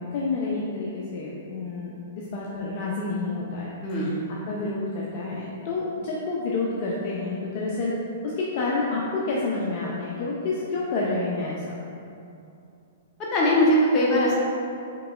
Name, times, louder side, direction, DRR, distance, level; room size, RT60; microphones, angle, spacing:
voice 1, 0.1-3.7 4.0-4.1 4.5-8.0 8.2-11.6, left 3 dB, 50° left, -4 dB, 0.5 m, -29 dB
voice 2, 13.2-14.4, equal, 30° left, -5 dB, 0.9 m, -20 dB
4.7 x 3.0 x 2.4 m, 2.6 s
hypercardioid pair, 120°, 0 cm